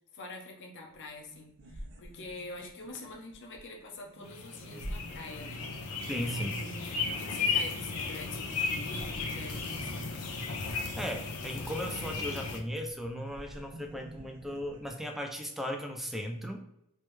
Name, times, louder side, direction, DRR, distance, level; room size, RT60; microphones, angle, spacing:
voice 1, 0.1-6.9 7.2-10.2, left 2 dB, 55° left, 0 dB, 0.9 m, -46 dB
sound 1, 0.9-1.0 1.2-8.2 8.5-14.9, right 1 dB, 60° right, 0.7 m, -49 dB
sound 2, 4.3-12.6, left 4 dB, 85° left, 0.7 m, -35 dB
voice 2, 6.1-6.6 10.7-16.6, equal, ahead, 3 dB, 0.5 m, -37 dB
3.2 x 3.2 x 3.2 m, 0.82 s
head